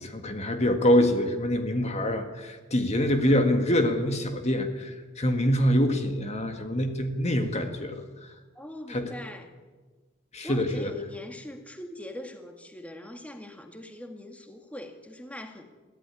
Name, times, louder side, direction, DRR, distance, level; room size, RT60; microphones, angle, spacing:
voice 1, 0.0-8.0 8.9-9.1 10.3-10.9, equal, 35° left, 6 dB, 1.8 m, -25 dB
voice 2, 8.6-9.5 10.4-15.6, left 1 dB, 5° left, 5 dB, 1.9 m, -42 dB
22.5 x 15.5 x 9.8 m, 1.3 s
head